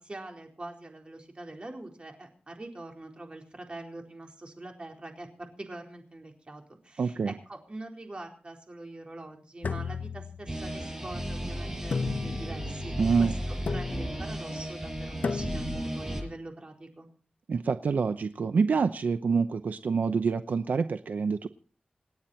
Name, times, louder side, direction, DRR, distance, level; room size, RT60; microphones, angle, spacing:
voice 1, 0.0-17.1, right 2 dB, 40° right, 2 dB, 4.2 m, -44 dB
voice 2, 7.0-7.3 13.0-13.3 17.5-21.5, right 5 dB, 80° right, 10 dB, 0.7 m, -26 dB
sound 1, 9.6-10.8 11.9-12.7 13.7-14.3 15.2-15.9, left 4 dB, 75° left, 1.1 m, -34 dB
sound 2, 10.5-16.2, equal, 15° right, 6.0 m, -34 dB
28.0 x 9.4 x 4.4 m, 0.42 s
wide cardioid pair, 75°, 3 cm